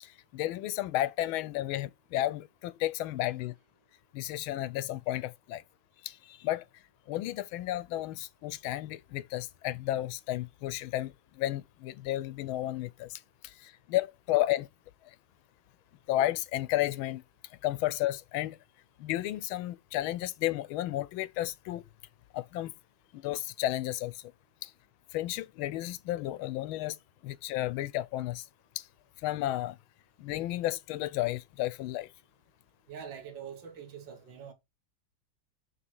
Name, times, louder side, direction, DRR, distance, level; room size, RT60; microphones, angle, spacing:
voice 1, 0.0-3.5 4.1-5.6 6.0-6.7 7.1-14.7 15.0-15.1 16.1-17.2 17.6-18.6 19.0-21.8 22.3-22.7 23.1-24.3 24.6-24.7 25.1-27.0 27.2-28.5 28.8-28.9 29.2-29.8 30.2-32.1, left 15 dB, 90° left, 1.4 m, -32 dB
voice 2, 32.9-34.5, right 7 dB, 65° right, 2.0 m, -44 dB
6.9 x 3.3 x 6.1 m
omnidirectional pair, 2.2 m